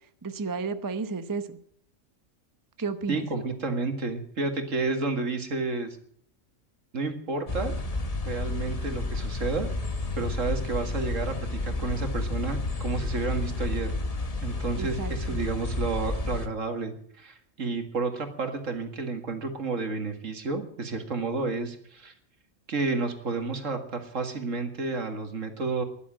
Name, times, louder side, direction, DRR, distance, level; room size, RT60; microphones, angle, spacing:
voice 1, 0.2-1.6 2.8-3.3 14.8-15.4, right 4 dB, 20° right, 10 dB, 0.6 m, -32 dB
voice 2, 3.1-6.0 6.9-7.7 8.3-9.7 10.2-13.9 14.4-22.1 22.7-25.8, right 3 dB, 70° right, 6 dB, 2.2 m, -31 dB
sound 1, 7.5-16.5, left 2 dB, 30° left, 1.1 m, -31 dB
12.5 x 11.5 x 8.8 m, 0.64 s
omnidirectional pair, 1.4 m